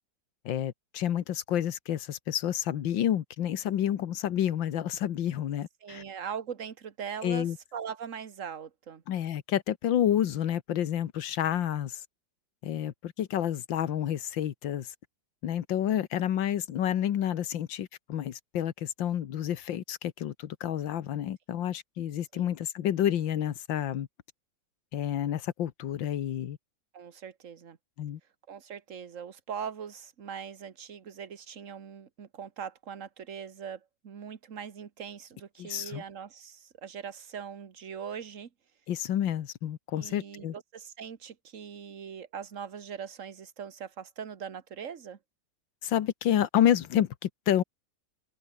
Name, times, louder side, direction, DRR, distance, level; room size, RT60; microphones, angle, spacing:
voice 1, 0.5-6.0 7.2-7.6 9.1-12.0 12.6-14.9 15.4-24.1 24.9-26.6 28.0-28.2 35.6-36.0 38.9-40.6 45.8-47.6, left 10 dB, 85° left, 1.9 m, -29 dB
voice 2, 5.8-7.5 7.7-9.0 22.3-22.5 26.9-27.8 28.5-38.5 39.9-45.2, right 7 dB, 45° right, 1.7 m, -41 dB
omnidirectional pair, 2.0 m